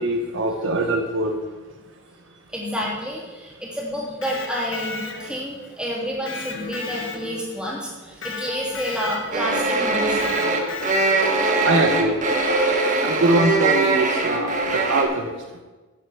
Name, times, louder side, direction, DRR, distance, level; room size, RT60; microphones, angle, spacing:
voice 1, 0.0-1.4 11.6-12.2 13.0-15.4, right 2 dB, 65° right, 3 dB, 1.0 m, -22 dB
voice 2, 2.5-10.4, equal, 5° right, -5 dB, 2.9 m, -29 dB
Electric guitar, 4.0-5.6 6.3-7.6 8.2-9.5 10.2-11.4, left 4 dB, 65° left, 1.2 m, -34 dB
sound 1, 9.3-15.0, right 3 dB, 40° right, 1.3 m, -21 dB
11.0 x 7.9 x 5.8 m, 1.2 s
head